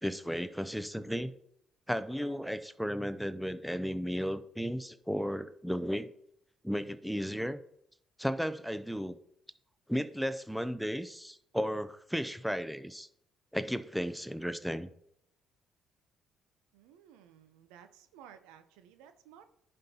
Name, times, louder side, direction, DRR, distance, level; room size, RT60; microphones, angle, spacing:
voice 1, 0.0-1.3 1.9-6.1 6.6-7.6 8.2-9.2 9.9-13.1 13.5-14.9, equal, ahead, 12 dB, 0.5 m, -34 dB
voice 2, 16.7-19.4, right 9 dB, 90° right, 9 dB, 0.6 m, -56 dB
10.5 x 5.4 x 2.8 m, 0.73 s
supercardioid pair, 75°, 0 cm